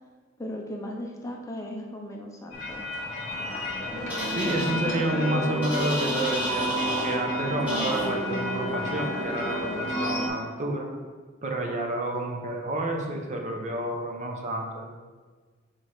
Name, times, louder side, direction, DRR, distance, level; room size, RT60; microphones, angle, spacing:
voice 1, 0.4-2.8, left 1 dB, 15° left, 0 dB, 0.6 m, -37 dB
sound 1, 2.5-10.3, left 1 dB, 40° left, 1.3 m, -30 dB
sound 2, 4.1-4.7 5.6-7.1 7.7-8.1, equal, 10° right, 1.8 m, -32 dB
voice 2, 4.2-10.9 11.4-14.9, right 1 dB, 40° right, 1 dB, 0.8 m, -30 dB
Mallet percussion, 6.5-8.6, right 15 dB, 85° right, 0.3 m, -37 dB
4.6 x 4.4 x 4.8 m, 1.4 s
head